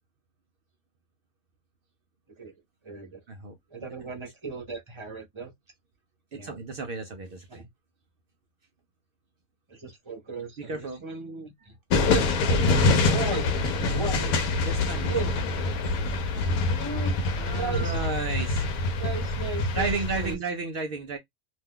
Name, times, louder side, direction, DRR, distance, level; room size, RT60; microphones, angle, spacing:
voice 1, 2.8-3.2 3.7-5.5 6.3-6.6 7.5-7.7 9.7-11.8 12.0-12.3 13.1-13.5 13.9-14.3 15.1-15.3 16.7-17.1 17.5-17.9 19.0-20.4, right 4 dB, 25° right, 0.8 m, -36 dB
voice 2, 6.3-7.6 10.6-11.0 13.3-13.4 14.6-15.1 17.3-18.7 19.7-21.2, right 4 dB, 70° right, 0.5 m, -33 dB
sound 1, 11.9-20.3, left 3 dB, 85° left, 1.1 m, -25 dB
2.6 x 2.2 x 3.5 m
omnidirectional pair, 1.5 m